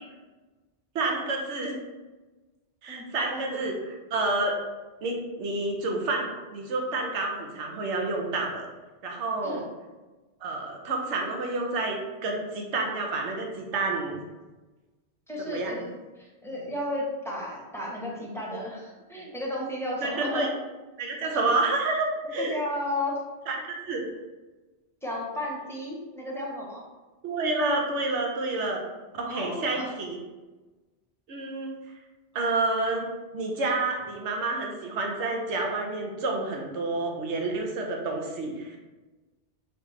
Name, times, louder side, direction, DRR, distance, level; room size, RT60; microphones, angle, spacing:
voice 1, 0.9-1.8 2.8-3.7 4.1-4.5 5.0-8.7 9.0-9.7 10.4-14.2 15.4-15.7 20.0-20.5 21.0-22.5 23.5-24.1 27.2-28.8 29.2-30.2 31.3-31.7 32.3-38.8, right 2 dB, 75° right, 1 dB, 1.1 m, -29 dB
voice 2, 2.9-3.6 9.4-9.6 15.3-15.9 16.2-20.5 21.3-21.6 22.4-23.2 25.0-26.8 29.3-29.9, left 1 dB, ahead, -4 dB, 0.9 m, -33 dB
5.0 x 3.2 x 3.1 m, 1.2 s
omnidirectional pair, 1.2 m